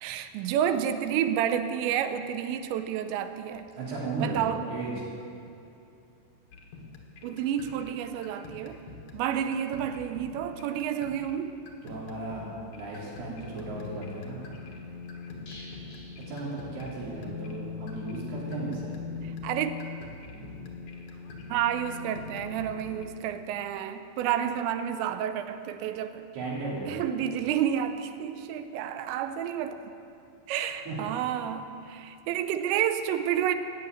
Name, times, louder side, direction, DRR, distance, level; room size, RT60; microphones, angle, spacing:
voice 1, 0.0-3.6 4.2-4.6 7.2-8.8 9.1-11.6 19.4-19.7 21.5-26.2 26.9-29.8 30.5-33.5, right 9 dB, 85° right, 9 dB, 2.8 m, -30 dB
voice 2, 3.8-4.4 4.7-5.1 11.8-14.7 16.3-19.0 26.3-26.9 30.9-31.0, right 3 dB, 60° right, -5 dB, 5.1 m, -35 dB
sound 1, 6.5-23.1, left 4 dB, 90° left, 1.5 m, -42 dB
sound 2, 15.5-17.2 17.5-17.6 17.9-18.0, left 1 dB, 40° left, 5.1 m, -51 dB
17.5 x 6.8 x 9.1 m, 2.6 s
omnidirectional pair, 5.5 m